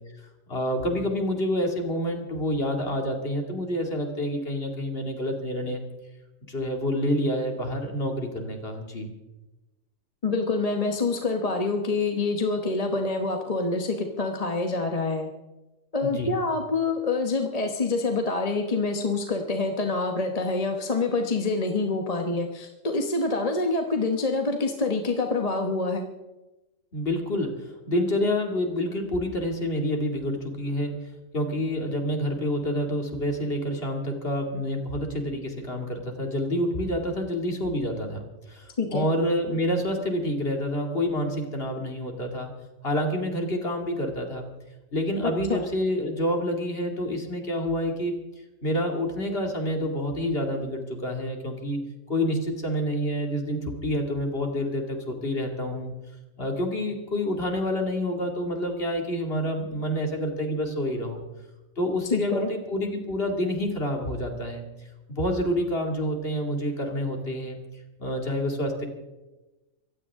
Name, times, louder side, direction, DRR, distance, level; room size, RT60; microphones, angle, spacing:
voice 1, 0.5-5.8 6.5-9.1 16.0-16.3 26.9-31.0 31.3-38.2 38.5-42.5 42.8-44.4 44.9-48.2 48.6-51.8 52.1-55.9 56.4-61.2 61.8-64.6 65.1-67.6 68.0-68.9, equal, 50° left, 2 dB, 2.8 m, -28 dB
voice 2, 10.2-15.3 15.9-26.0 38.8-39.1 45.5-45.6 62.1-62.5, left 3 dB, 30° left, 4 dB, 1.2 m, -26 dB
24.0 x 15.5 x 3.7 m, 1.1 s
omnidirectional pair, 1.3 m